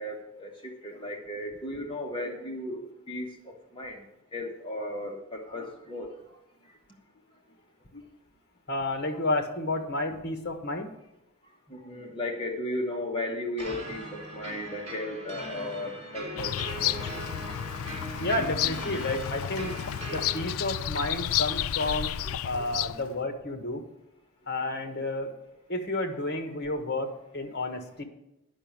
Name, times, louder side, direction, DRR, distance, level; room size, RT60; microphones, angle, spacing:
voice 1, 0.0-2.8 3.1-4.0 4.3-6.1 7.9-8.0 11.7-16.9 18.4-18.5, left 1 dB, 25° left, 1 dB, 1.4 m, -35 dB
voice 2, 8.7-10.9 18.2-19.8 20.1-22.2 22.4-23.8 24.5-25.3 25.7-28.0, left 2 dB, 50° left, 6 dB, 1.5 m, -31 dB
sound 1, 13.6-20.4, right 1 dB, 30° right, 2.7 m, -40 dB
Bird vocalization bird call bird song, 16.4-23.1, left 11 dB, 70° left, 0.4 m, -31 dB
10.0 x 6.2 x 8.7 m, 0.88 s
head